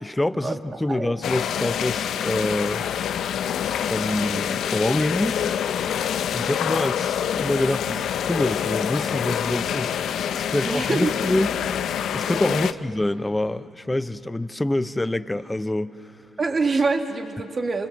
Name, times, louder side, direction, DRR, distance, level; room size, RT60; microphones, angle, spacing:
voice 1, 0.0-2.8 3.8-5.5 6.3-10.0 10.3-11.5 12.1-15.9, left 1 dB, 10° left, 12 dB, 0.8 m, -26 dB
sound 1, 1.2-12.7, left 9 dB, 70° left, 0.7 m, -26 dB
voice 2, 10.6-11.1 12.5-12.8 16.4-17.9, right 3 dB, 35° right, 4 dB, 2.5 m, -25 dB
28.5 x 27.0 x 7.7 m, 2.6 s
cardioid pair, 90°, 0 cm